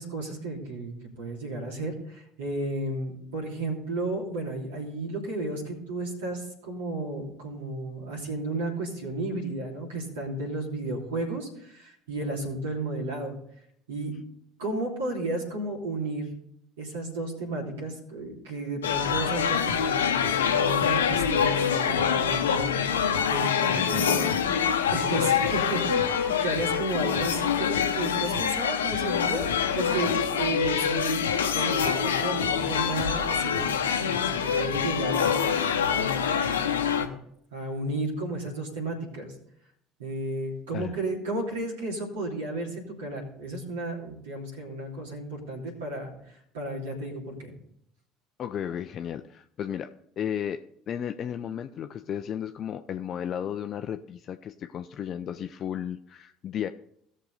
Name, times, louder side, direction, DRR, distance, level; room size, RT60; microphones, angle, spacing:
voice 1, 0.0-13.4 13.9-14.1 14.6-16.3 16.8-24.2 24.9-35.5 35.9-37.1 37.5-39.3 40.0-46.1 46.5-47.5, right 2 dB, 75° right, -2 dB, 3.0 m, -33 dB
sound 1, 18.8-37.1, left 7 dB, 80° left, 0.8 m, -25 dB
voice 2, 23.8-24.8 25.4-25.6 40.7-40.9 48.4-56.7, left 9 dB, 45° left, 8 dB, 0.5 m, -34 dB
17.0 x 6.5 x 4.1 m, 0.71 s
figure-of-eight pair, 60°, 0 cm